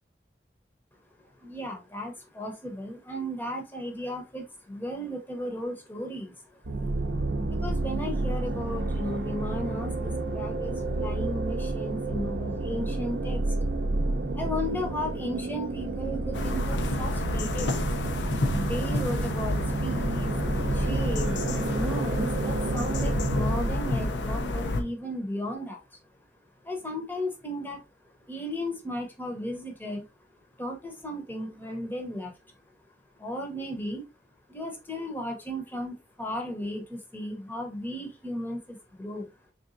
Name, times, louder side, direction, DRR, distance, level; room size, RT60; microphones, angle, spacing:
voice 1, 1.4-6.4 7.5-13.6 14.3-17.9 18.5-20.4 20.7-25.8 26.6-27.8 28.3-30.1 30.6-32.3 33.2-34.0 34.5-39.3, equal, 10° left, 2 dB, 0.7 m, -35 dB
sound 1, 6.6-24.1, right 2 dB, 70° right, 0.6 m, -30 dB
sound 2, 16.3-24.8, left 2 dB, 85° left, 0.6 m, -30 dB
3.9 x 3.5 x 2.5 m, 0.27 s
head